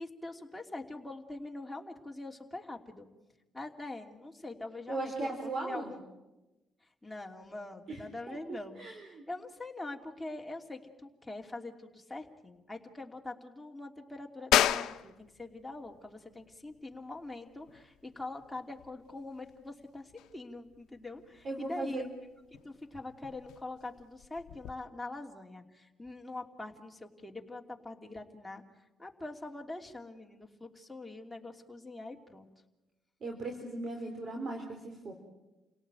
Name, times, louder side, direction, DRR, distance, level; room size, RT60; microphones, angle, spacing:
voice 1, 0.0-3.1 3.5-6.0 7.0-22.0 22.5-28.6 29.0-32.5, left 2 dB, 5° left, 1 dB, 3.0 m, -44 dB
voice 2, 4.9-6.0 7.9-8.0 8.3-9.2 21.4-22.1 33.2-35.1, right 2 dB, 55° right, 2 dB, 3.9 m, -38 dB
sound 1, 14.5-24.7, left 12 dB, 85° left, 0.8 m, -36 dB
29.0 x 18.0 x 9.1 m, 1.1 s
cardioid pair, 90°, 0 cm